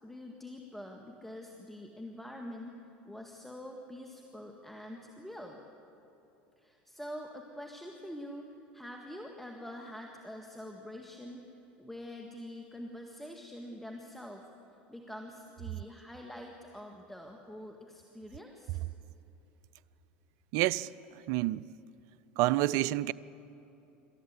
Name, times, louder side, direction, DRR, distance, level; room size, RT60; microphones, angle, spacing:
voice 1, 0.0-2.8 3.1-5.6 6.6-8.5 8.7-11.5 11.8-14.5 14.9-18.8, left 1 dB, 5° left, 1.8 m, -45 dB
voice 2, 20.5-21.6 22.4-23.1, right 16 dB, 60° right, 0.5 m, -29 dB
27.0 x 13.5 x 8.3 m
hypercardioid pair, 80°, 6 cm